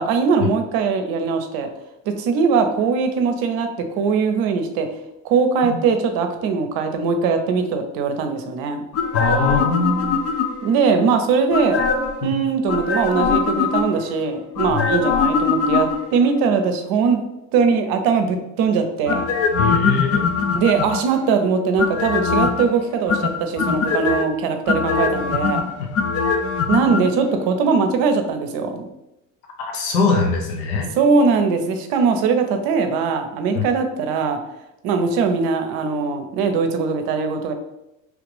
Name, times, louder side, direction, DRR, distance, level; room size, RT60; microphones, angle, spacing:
voice 1, 0.0-1.7 2.1-4.9 5.2-8.8 10.6-11.8 12.2-17.2 17.5-19.3 20.5-25.7 26.7-28.9 31.0-34.4 34.8-37.5, right 5 dB, 60° right, 7 dB, 0.6 m, -20 dB
sound 1, 8.9-10.8 11.5-12.2 12.7-14.1 14.6-16.3 19.1-21.2 21.8-22.7 23.1-24.2 24.7-27.0 27.3-27.4, left 5 dB, 40° left, 0.5 m, -21 dB
voice 2, 9.1-10.2 12.2-12.3 14.7-14.9 19.6-20.2 29.6-30.9 33.5-33.6, left 3 dB, 80° left, 1 dB, 0.9 m, -22 dB
3.2 x 2.4 x 3.2 m, 0.91 s
hypercardioid pair, 75°, 41 cm